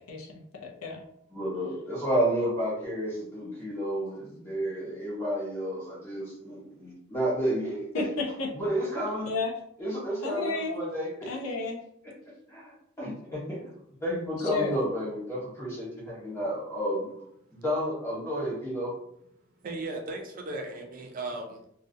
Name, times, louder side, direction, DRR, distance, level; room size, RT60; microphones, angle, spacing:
voice 1, 0.1-1.0 7.9-8.5 9.3-9.5 10.2-10.8 11.3-11.8 14.5-14.7, left 3 dB, 90° left, 1 dB, 0.5 m, -32 dB
voice 2, 1.3-8.1 8.5-9.3 9.8-11.6 12.5-13.7 14.0-17.1 17.5-18.9, equal, 15° left, -6 dB, 1.1 m, -31 dB
voice 3, 19.6-21.7, right 2 dB, 40° right, 2 dB, 0.4 m, -36 dB
2.4 x 2.0 x 2.6 m, 0.73 s
head